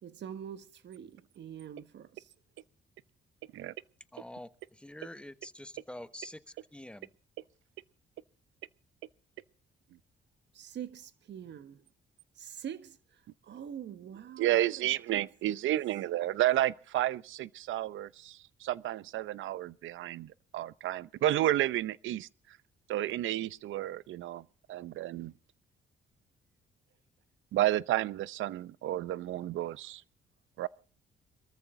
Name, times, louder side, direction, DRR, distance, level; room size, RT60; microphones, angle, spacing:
voice 1, 0.0-2.3 10.5-11.9 12.3-15.8, right 9 dB, 65° right, 1.5 m, -45 dB
voice 2, 4.1-6.4 6.7-7.1, left 1 dB, 5° left, 1.2 m, -46 dB
voice 3, 14.4-22.3 22.9-24.4 24.7-25.3 27.5-30.0 30.6-30.7, right 14 dB, 80° right, 0.7 m, -31 dB
23.0 x 14.0 x 3.8 m
cardioid pair, 90°, 20 cm